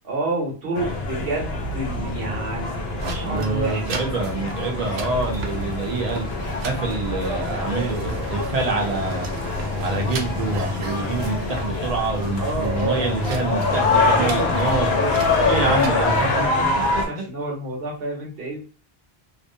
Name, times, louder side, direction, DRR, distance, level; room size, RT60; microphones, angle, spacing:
voice 1, 0.0-4.0 12.4-13.5 14.0-18.6, right 2 dB, 70° right, -2 dB, 1.1 m, -29 dB
sound 1, 0.7-17.1, left 3 dB, 85° left, 0.8 m, -25 dB
sound 2, 3.0-15.9, right 4 dB, 90° right, 0.8 m, -36 dB
voice 2, 3.2-9.3 9.8-15.0 15.4-16.2 16.9-17.0, right 3 dB, 45° right, 1 dB, 0.7 m, -26 dB
2.5 x 2.0 x 2.6 m, 0.36 s
omnidirectional pair, 1.0 m